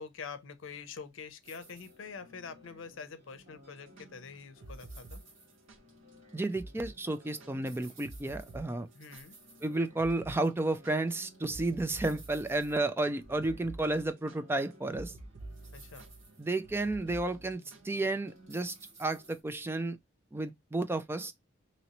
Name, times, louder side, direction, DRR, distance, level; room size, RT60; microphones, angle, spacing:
voice 1, 0.0-5.2 8.9-9.3 15.7-16.1, left 5 dB, 80° left, 0.6 m, -45 dB
sound 1, 1.4-19.4, right 1 dB, 40° right, 1.7 m, -57 dB
sound 2, 3.8-5.8 6.1-6.2 6.5-6.9 7.2-9.6 10.0-10.4 10.6-17.9, right 2 dB, 85° right, 0.7 m, -48 dB
voice 2, 6.3-8.9 9.6-15.1 16.4-18.7 19.0-20.0 20.3-21.3, right 2 dB, 10° right, 0.3 m, -32 dB
3.0 x 2.9 x 2.8 m
head